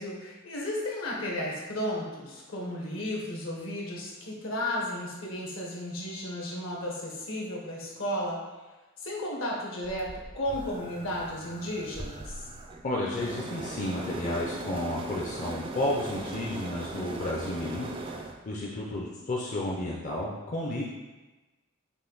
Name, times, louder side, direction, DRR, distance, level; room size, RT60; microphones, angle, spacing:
voice 1, 0.0-8.4 9.0-12.3, left 1 dB, 70° left, -3 dB, 1.1 m, -34 dB
sound 1, 9.8-18.4, right 2 dB, 25° right, 0.3 m, -39 dB
voice 2, 12.8-17.9 18.4-20.8, left 1 dB, 35° left, -4 dB, 0.5 m, -32 dB
5.4 x 2.6 x 3.9 m, 1.2 s
head